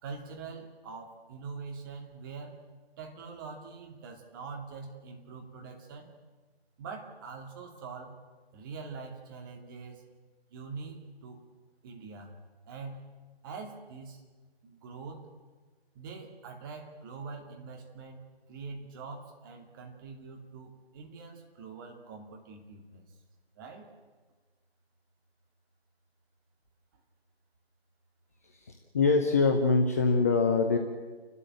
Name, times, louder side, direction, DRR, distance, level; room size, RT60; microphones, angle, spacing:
voice 1, 0.0-2.6 3.0-6.1 6.8-8.2 8.5-10.0 10.5-11.4 11.8-12.3 12.6-13.0 13.4-14.2 14.6-15.3 15.9-23.0 23.6-23.9, right 4 dB, 20° right, 1 dB, 2.4 m, -44 dB
voice 2, 28.5-30.8, left 4 dB, 15° left, 3 dB, 0.7 m, -24 dB
29.5 x 12.5 x 8.8 m, 1.3 s
figure-of-eight pair, 150°, 32 cm